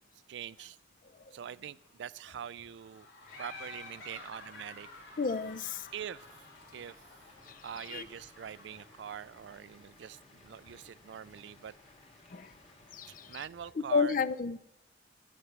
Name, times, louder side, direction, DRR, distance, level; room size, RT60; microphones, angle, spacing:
voice 1, 0.3-0.8 1.3-3.1 3.4-4.9 5.9-6.3 6.7-7.0 7.6-11.7 13.3-14.2, right 8 dB, 65° right, 0.3 m, -44 dB
sound 1, 1.2-9.6, left 2 dB, 65° left, 2.2 m, -58 dB
sound 2, 3.2-13.4, left 2 dB, 30° left, 2.0 m, -60 dB
Laughter, 3.3-6.9, left 3 dB, 85° left, 3.5 m, -50 dB
voice 2, 5.2-5.9 7.5-8.1 12.3-12.5 12.9-13.4 13.8-14.6, left 5 dB, 45° left, 0.5 m, -32 dB
12.5 x 8.1 x 5.9 m
head